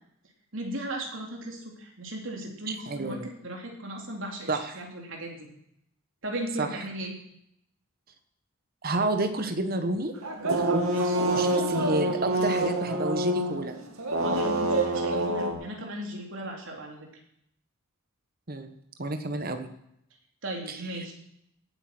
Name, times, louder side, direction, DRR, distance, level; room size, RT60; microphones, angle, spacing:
voice 1, 0.5-5.5 6.2-7.1 10.9-11.3 14.2-17.1 20.4-21.1, right 1 dB, 65° right, 0 dB, 3.5 m, -37 dB
voice 2, 2.7-3.3 4.5-4.8 6.6-6.7 8.8-10.2 10.6-10.8 11.3-13.7 18.5-18.7 19.0-19.7 20.7-21.0, right 2 dB, 45° right, 8 dB, 1.4 m, -30 dB
sound 1, 10.2-15.5, right 2 dB, 85° right, 2.5 m, -26 dB
17.5 x 8.7 x 6.1 m, 0.76 s
head